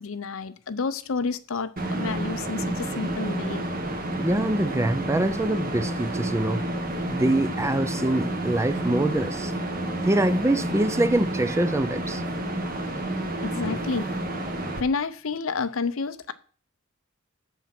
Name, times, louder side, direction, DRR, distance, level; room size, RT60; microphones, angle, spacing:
voice 1, 0.0-3.7 13.4-14.1 14.8-16.3, left 4 dB, 70° left, 0.7 m, -30 dB
sound 1, 1.8-14.8, right 1 dB, 45° right, 1.4 m, -30 dB
voice 2, 4.2-6.6 7.1-9.5 10.0-12.2, right 1 dB, 15° right, 0.5 m, -24 dB
7.4 x 7.2 x 5.9 m
head